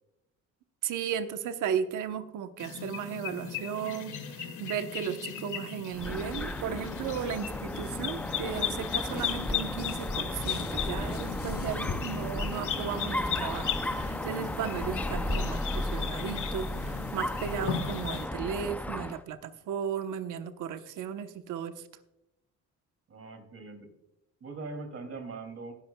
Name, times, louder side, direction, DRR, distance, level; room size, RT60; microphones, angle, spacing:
voice 1, 0.8-21.9, right 8 dB, 85° right, 9 dB, 1.0 m, -35 dB
sound 1, 2.6-18.3, left 8 dB, 80° left, 1.8 m, -37 dB
sound 2, 3.8-4.2 4.5-4.7 5.2-5.4 5.8-13.1, left 6 dB, 50° left, 1.6 m, -47 dB
Dog, 5.9-19.2, left 1 dB, 5° left, 0.5 m, -35 dB
voice 2, 23.1-23.9 24.4-25.7, right 3 dB, 50° right, 6 dB, 2.7 m, -41 dB
19.0 x 10.5 x 2.3 m, 0.90 s
cardioid pair, 90°, 30 cm